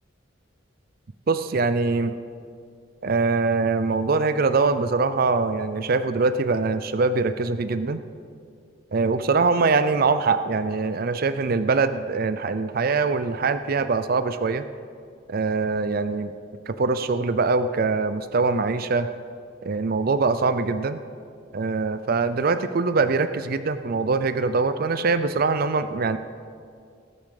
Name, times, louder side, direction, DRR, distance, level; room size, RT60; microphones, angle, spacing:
voice 1, 1.3-2.1 3.0-8.0 8.9-14.6 15.3-16.3 16.7-19.1 19.6-21.0 21.5-26.2, right 4 dB, 50° right, 12 dB, 0.5 m, -23 dB
19.0 x 7.1 x 6.5 m, 2.3 s
head